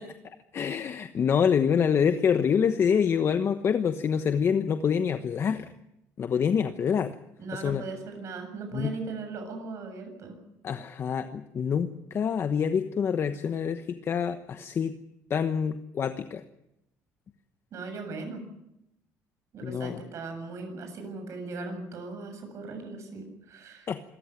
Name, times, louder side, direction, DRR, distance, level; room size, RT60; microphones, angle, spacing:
voice 1, 0.0-5.7 6.2-7.2 7.5-7.8 8.7-8.9 10.6-15.0 15.3-16.4 19.6-20.0 23.9-24.0, left 7 dB, 45° left, 9 dB, 1.1 m, -26 dB
voice 2, 7.4-10.4 17.7-18.4 19.5-23.9, right 3 dB, 55° right, 6 dB, 7.6 m, -38 dB
26.5 x 14.5 x 9.1 m, 0.83 s
cardioid pair, 115°, 6 cm